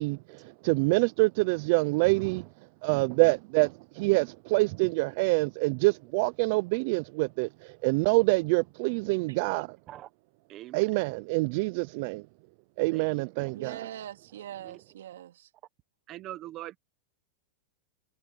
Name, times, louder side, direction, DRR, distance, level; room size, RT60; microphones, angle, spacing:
voice 1, 0.0-2.5 2.8-9.8 10.7-12.3 12.8-13.8, right 26 dB, 45° right, 0.3 m, -26 dB
voice 2, 10.5-10.8 12.9-13.1 13.4-13.5 14.6-14.8 16.1-16.8, right 14 dB, 30° right, 1.1 m, -42 dB
voice 3, 13.5-15.5, right 11 dB, 90° right, 2.9 m, -42 dB
supercardioid pair, 160°, 0 cm